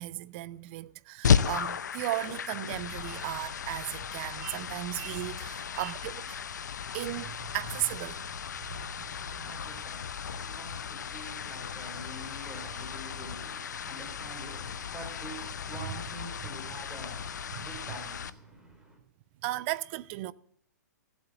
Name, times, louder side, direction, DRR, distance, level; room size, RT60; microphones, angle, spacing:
voice 1, 0.0-6.4 6.9-8.2 8.7-9.5 19.4-20.3, right 17 dB, 40° right, 0.5 m, -36 dB
sound 1, 1.2-18.3, left 7 dB, 70° left, 0.7 m, -34 dB
voice 2, 8.7-19.0, equal, 5° right, 4.3 m, -46 dB
16.0 x 7.9 x 7.9 m
figure-of-eight pair, 115°, 10 cm